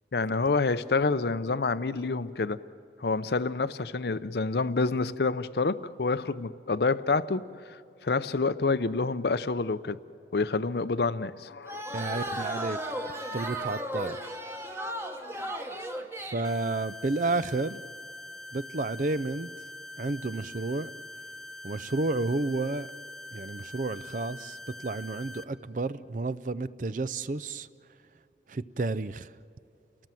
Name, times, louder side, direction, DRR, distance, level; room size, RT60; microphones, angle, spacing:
voice 1, 0.1-2.6 3.0-10.0 10.3-11.8, left 3 dB, 65° left, 0.6 m, -28 dB
sound 1, 11.7-16.5, right 1 dB, 15° right, 1.2 m, -35 dB
voice 2, 11.9-12.8 13.3-14.2 16.2-17.8 18.5-19.5 20.0-20.9 21.6-22.9 23.3-27.7 28.5-29.3, right 3 dB, 45° right, 0.5 m, -31 dB
sound 2, 16.4-25.4, left 1 dB, ahead, 0.5 m, -44 dB
30.0 x 18.5 x 7.6 m
head